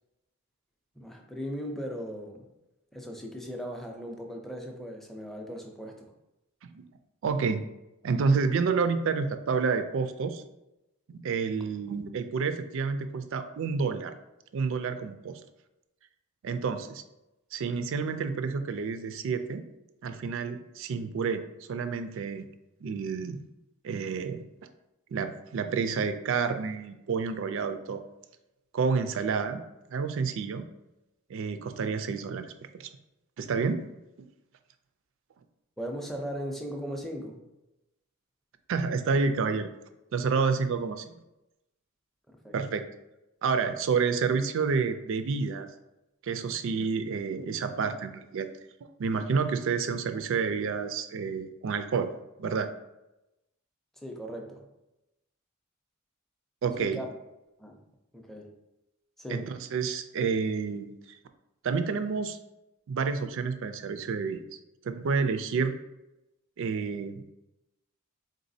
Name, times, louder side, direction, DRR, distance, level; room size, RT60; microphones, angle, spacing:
voice 1, 1.0-2.5 2.9-6.1 35.8-37.4 42.3-42.6 54.0-54.7 56.8-57.1 57.6-57.8 58.1-58.5 59.2-59.5, equal, ahead, 2 dB, 0.5 m, -38 dB
voice 2, 7.2-7.6 8.0-10.4 11.1-14.1 14.5-15.4 16.4-17.0 17.5-19.7 20.0-21.4 21.7-22.5 22.8-23.4 23.8-24.4 25.1-28.0 28.7-29.6 29.9-30.7 31.3-32.9 33.4-33.8 38.7-39.7 40.1-41.1 42.5-42.9 43.4-45.7 46.2-48.5 49.0-52.1 52.4-52.7 56.6-57.0 59.3-60.9 61.6-62.4 62.9-64.4 64.8-65.7 66.6-67.2, right 5 dB, 65° right, 9 dB, 0.4 m, -29 dB
3.9 x 3.7 x 2.6 m, 0.94 s
head